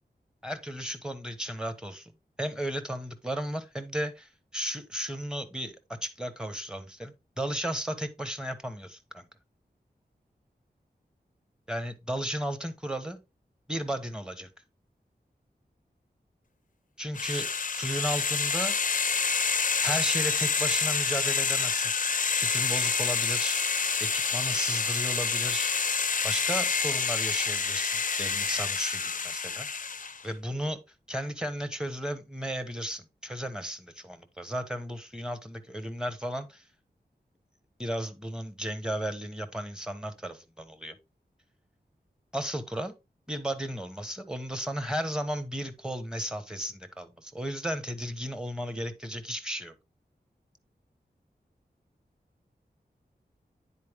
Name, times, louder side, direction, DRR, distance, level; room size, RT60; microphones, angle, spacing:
voice 1, 0.4-2.1 2.4-5.8 6.0-9.2 11.7-13.2 13.7-14.5 17.0-18.7 19.8-21.9 22.4-23.6 24.0-25.7 26.2-29.7 30.2-30.8 31.1-36.6 37.8-40.9 42.3-42.9 43.3-49.7, equal, 5° right, 1.2 m, -34 dB
sound 1, 17.1-30.2, left 5 dB, 50° left, 0.5 m, -28 dB
9.4 x 4.4 x 3.6 m
wide cardioid pair, 65°, 18 cm